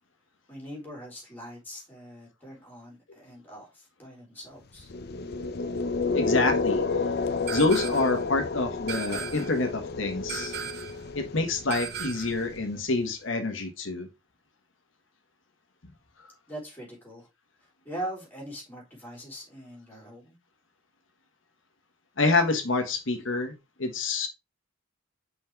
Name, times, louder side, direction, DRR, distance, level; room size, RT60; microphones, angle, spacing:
voice 1, 0.5-4.9 16.5-17.3 17.6-20.4, right 1 dB, 10° left, 3.5 m, -42 dB
sound 1, 4.8-12.9, left 4 dB, 50° left, 0.6 m, -30 dB
voice 2, 6.1-6.8 7.5-10.5 11.1-14.1 22.2-23.5 23.8-24.3, left 3 dB, 70° left, 1.4 m, -27 dB
sound 2, 7.5-8.2 8.9-9.6 10.3-11.0 11.7-12.4, right 8 dB, 55° right, 0.8 m, -37 dB
5.8 x 4.3 x 4.5 m
head